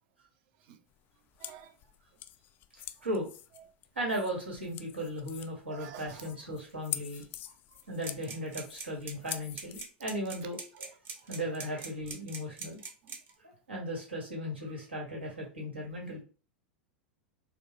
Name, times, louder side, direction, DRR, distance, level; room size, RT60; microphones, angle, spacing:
sound 1, 0.9-9.8, left 12 dB, 35° left, 0.3 m, -45 dB
voice 1, 1.4-1.7 5.7-6.2, right 9 dB, 50° right, 0.6 m, -48 dB
voice 2, 3.9-7.2 7.9-10.9 11.3-12.8 13.4-16.2, equal, 85° right, 1.7 m, -37 dB
sound 2, 8.0-13.3, right 5 dB, 35° right, 1.0 m, -42 dB
4.2 x 2.3 x 3.3 m
figure-of-eight pair, 90°, 6 cm